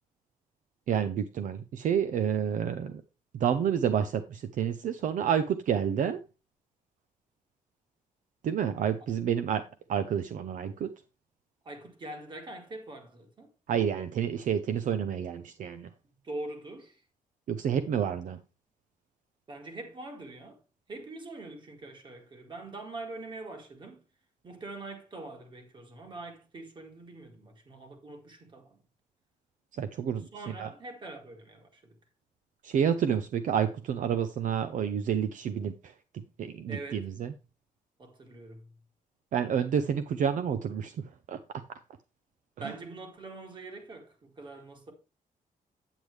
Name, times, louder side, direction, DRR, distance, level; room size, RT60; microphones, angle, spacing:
voice 1, 0.9-3.0 3.3-6.2 8.4-9.6 9.9-10.9 13.7-15.9 17.5-18.4 29.8-30.3 30.6-30.7 32.6-35.9 36.4-37.3 39.3-40.9 41.3-41.4 42.6-42.7, right 8 dB, 65° right, 0.6 m, -29 dB
voice 2, 11.6-13.5 16.2-17.0 19.5-20.6 20.9-24.0 24.4-28.8 30.3-32.0 36.7-37.1 38.0-38.8 42.6-44.9, right 2 dB, 35° right, 1.9 m, -43 dB
8.9 x 8.0 x 3.3 m
wide cardioid pair, 160°, 15 cm